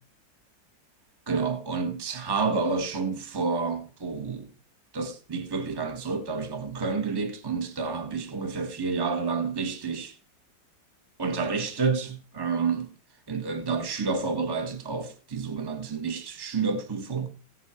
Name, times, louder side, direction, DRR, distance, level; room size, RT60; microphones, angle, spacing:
voice 1, 1.3-4.5 4.9-10.2 11.2-12.9 13.3-17.3, right 4 dB, 15° right, 1.2 m, -29 dB
16.5 x 8.5 x 4.4 m
omnidirectional pair, 2.0 m